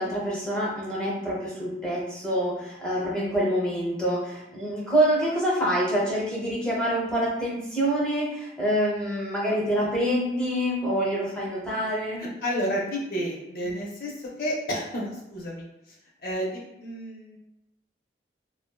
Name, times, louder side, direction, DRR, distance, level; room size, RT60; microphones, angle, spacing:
voice 1, 0.0-12.2, equal, 5° left, -6 dB, 0.6 m, -26 dB
voice 2, 12.2-14.1 14.4-15.6 16.2-17.4, equal, 55° left, -2 dB, 0.6 m, -31 dB
2.5 x 2.2 x 2.2 m, 0.87 s
head